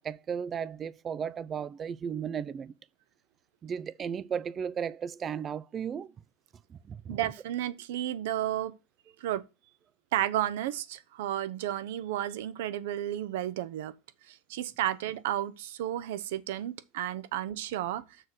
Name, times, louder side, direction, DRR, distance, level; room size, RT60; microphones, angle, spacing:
voice 1, 0.0-2.7 3.6-6.1 6.7-7.2, right 7 dB, 20° right, 0.3 m, -35 dB
voice 2, 7.1-8.7 9.2-9.4 10.1-13.9 14.3-18.0, right 12 dB, 70° right, 0.8 m, -32 dB
6.5 x 4.2 x 6.2 m
supercardioid pair, 165°, 0 cm